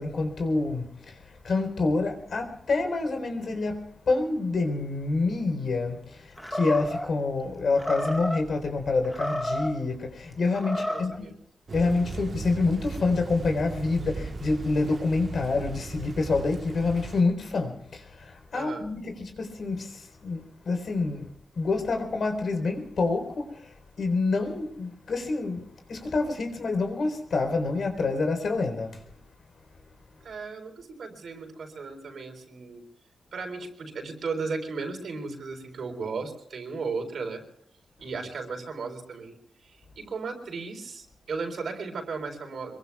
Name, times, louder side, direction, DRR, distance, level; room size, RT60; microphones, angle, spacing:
voice 1, 0.0-11.3 11.7-21.3 21.6-29.0, left 3 dB, 60° left, 4.0 m, -27 dB
Animal, 6.4-7.1 7.8-8.4 9.0-9.8 10.5-11.2, equal, 5° left, 1.6 m, -31 dB
voice 2, 10.6-11.3 18.5-18.8 30.2-32.8 33.3-37.4 38.0-42.8, right 4 dB, 70° right, 4.1 m, -36 dB
Thunder / Rain, 11.7-17.2, right 4 dB, 45° right, 1.3 m, -38 dB
26.5 x 23.0 x 2.4 m
wide cardioid pair, 130°, 0 cm